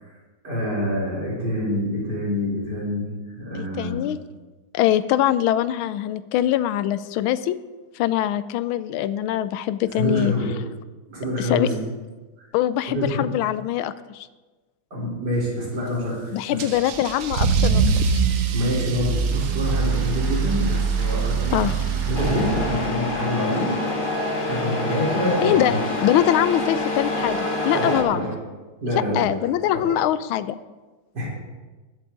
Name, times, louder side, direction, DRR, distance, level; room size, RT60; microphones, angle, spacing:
voice 1, 0.4-3.1 3.4-4.1 10.0-10.6 11.1-11.8 12.9-13.3 14.9-16.7 18.5-23.7 24.5-25.8 27.7-28.3 28.8-29.3 29.7-29.8 31.1-31.3, equal, 50° right, -5 dB, 4.4 m, -26 dB
voice 2, 3.5-4.2 4.7-7.5 7.9-10.3 11.4-11.7 12.5-14.3 16.3-18.2 21.5-21.7 25.4-25.7 26.0-28.3 29.1-30.6, left 12 dB, 80° left, 14 dB, 1.3 m, -23 dB
Car / Engine starting / Accelerating revving vroom, 16.6-23.1, right 5 dB, 70° right, 0.7 m, -23 dB
sound 1, 18.8-26.8, right 1 dB, 20° right, 4.7 m, -43 dB
Truck, 22.1-28.0, left 2 dB, 25° left, 1.3 m, -26 dB
20.5 x 7.4 x 3.8 m, 1.2 s
omnidirectional pair, 2.4 m